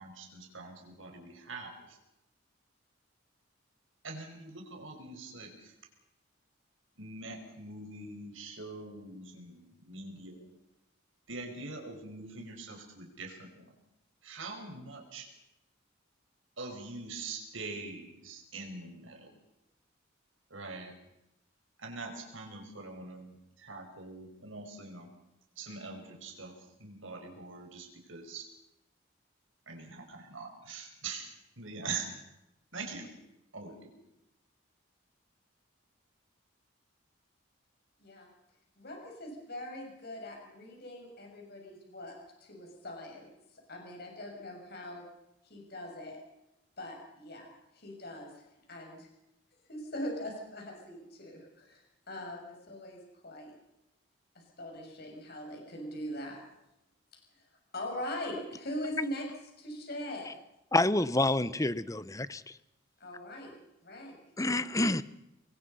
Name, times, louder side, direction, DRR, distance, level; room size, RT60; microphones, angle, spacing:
voice 1, 0.0-2.0 4.0-5.7 7.0-10.4 11.3-13.8 14.2-15.3 16.6-19.3 20.5-20.9 21.8-25.1 25.6-26.5 26.8-28.5 29.7-32.1 32.7-33.1 33.5-33.9, right 3 dB, 80° right, 3 dB, 5.5 m, -43 dB
voice 2, 38.8-43.3 43.7-45.0 45.4-46.2 46.8-47.5 47.7-48.4 48.7-49.1 49.7-53.5 54.4-56.4 57.7-59.2 59.6-60.4 63.0-63.5 63.8-64.2, left 1 dB, 50° left, 1 dB, 6.9 m, -41 dB
voice 3, 60.7-62.4 64.4-65.0, left 2 dB, 15° left, 15 dB, 0.8 m, -28 dB
26.5 x 21.5 x 5.6 m, 0.87 s
head